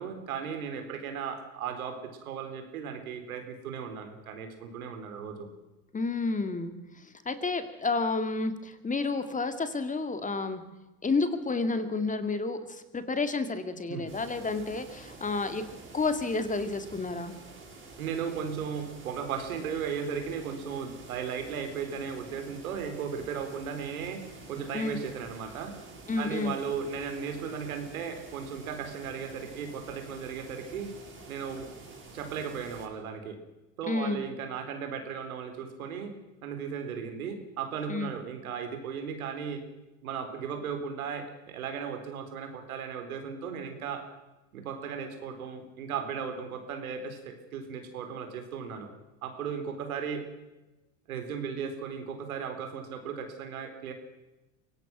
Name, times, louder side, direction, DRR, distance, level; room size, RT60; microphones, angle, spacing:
voice 1, 0.0-5.5 13.9-14.1 18.0-25.7 26.2-30.9 31.3-31.7 32.1-33.4 33.8-36.1 36.4-39.6 40.0-44.1 44.5-48.9 49.2-50.3 51.1-53.9, right 6 dB, 90° right, 6 dB, 4.0 m, -36 dB
voice 2, 5.9-10.6 11.0-15.6 15.9-17.4 24.7-25.0 26.1-26.6 33.9-34.3 37.9-38.1, left 3 dB, 20° left, 10 dB, 2.2 m, -30 dB
sound 1, 14.1-32.9, right 3 dB, 25° right, 7.5 m, -49 dB
24.0 x 18.0 x 6.2 m, 1.0 s
supercardioid pair, 100°, 41 cm